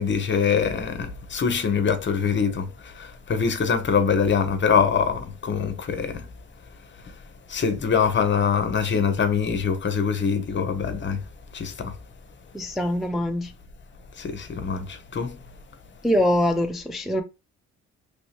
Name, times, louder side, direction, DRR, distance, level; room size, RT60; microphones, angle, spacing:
voice 1, 0.0-6.2 7.5-11.2 11.5-11.9 14.2-15.4, left 6 dB, 40° left, 0.7 m, -24 dB
voice 2, 12.5-13.5 16.0-17.2, left 1 dB, ahead, 0.4 m, -23 dB
3.1 x 2.9 x 2.8 m
cardioid pair, 90°, 30 cm